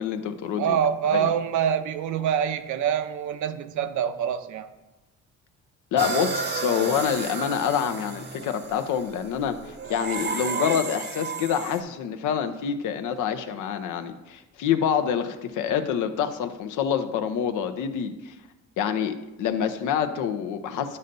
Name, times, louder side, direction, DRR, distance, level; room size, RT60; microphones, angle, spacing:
voice 1, 0.0-0.8 1.1-1.3 5.9-18.3 18.8-21.0, left 8 dB, 85° left, 8 dB, 0.7 m, -27 dB
voice 2, 0.6-4.7, right 8 dB, 75° right, 10 dB, 0.6 m, -25 dB
sound 1, 6.0-11.8, right 4 dB, 35° right, 0.7 m, -32 dB
11.0 x 5.5 x 2.6 m, 1.0 s
cardioid pair, 90°, 30 cm